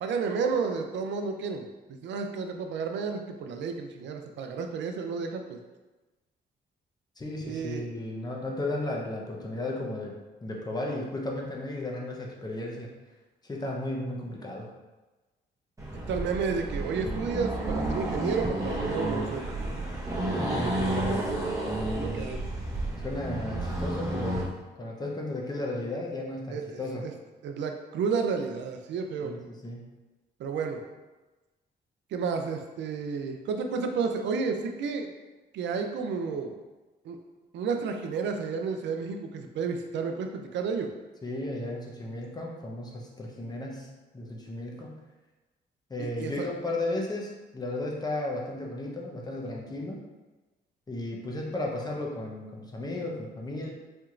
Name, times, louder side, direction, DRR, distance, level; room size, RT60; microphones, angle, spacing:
voice 1, 0.0-5.6 7.4-7.9 16.1-19.7 21.0-21.2 21.9-22.4 26.5-26.8 27.4-29.3 30.4-30.8 32.1-35.1 35.5-36.5 37.0-37.2 37.5-40.9 46.0-46.5, right 5 dB, 85° right, 5 dB, 0.5 m, -31 dB
voice 2, 7.2-10.1 10.4-12.9 13.4-14.7 20.3-21.5 23.0-24.5 24.8-27.1 29.2-29.8 41.2-45.0 45.9-50.0 50.9-53.7, left 2 dB, 20° left, -1 dB, 0.8 m, -34 dB
Accelerating revving vroom, 15.8-24.5, right 1 dB, 20° right, 1.0 m, -31 dB
4.4 x 2.9 x 2.5 m, 1.2 s
cardioid pair, 95°, 18 cm